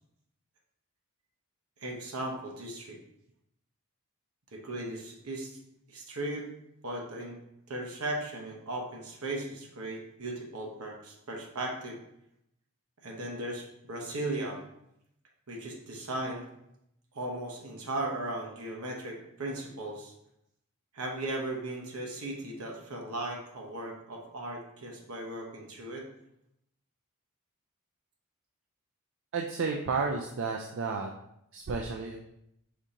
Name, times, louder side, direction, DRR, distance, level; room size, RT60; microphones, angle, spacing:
voice 1, 1.8-3.0 4.5-5.5 5.9-6.5 6.8-7.4 7.7-12.0 13.0-14.6 15.5-16.4 17.1-20.1 20.9-26.0, right 1 dB, 75° right, 0 dB, 1.0 m, -37 dB
voice 2, 29.3-31.1 31.5-32.2, right 4 dB, 60° right, 2 dB, 0.4 m, -32 dB
4.9 x 2.8 x 3.7 m, 0.80 s
head